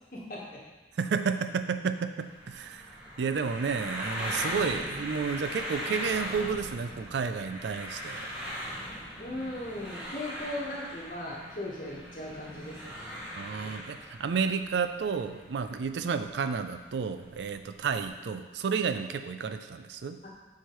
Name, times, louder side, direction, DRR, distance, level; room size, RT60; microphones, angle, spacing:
voice 1, 0.1-0.6 9.2-13.2 13.5-13.7 18.9-19.0 20.2-20.3, left 1 dB, 50° left, -4 dB, 1.3 m, -38 dB
voice 2, 1.0-2.9 3.2-8.3 13.4-20.2, right 5 dB, 80° right, 9 dB, 0.4 m, -31 dB
sound 1, 2.2-18.1, equal, 10° right, 1.7 m, -39 dB
8.0 x 4.7 x 3.1 m, 1.2 s
head